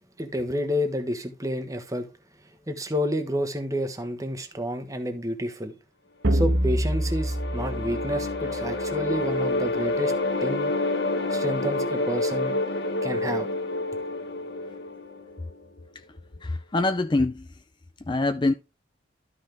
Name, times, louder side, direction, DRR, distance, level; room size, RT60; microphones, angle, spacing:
voice 1, 0.2-2.1 2.7-5.7 6.3-10.1 10.4-10.7 11.3-12.5 13.0-13.5, equal, 20° right, 1.3 m, -29 dB
sound 1, 6.2-8.9, equal, 85° right, 1.2 m, -26 dB
sound 2, 6.5-15.6, left 2 dB, 65° left, 1.3 m, -28 dB
voice 2, 16.4-17.5 18.1-18.5, left 2 dB, 25° left, 0.4 m, -24 dB
12.5 x 5.9 x 3.4 m
head